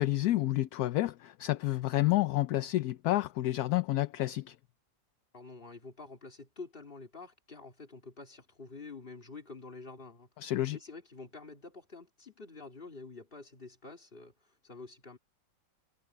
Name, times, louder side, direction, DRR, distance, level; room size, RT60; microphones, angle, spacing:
voice 1, 0.0-4.6 10.4-10.8, left 16 dB, 70° left, 1.0 m, -29 dB
voice 2, 5.3-10.3 10.7-15.2, left 3 dB, 30° left, 3.0 m, -48 dB
omnidirectional pair, 1.9 m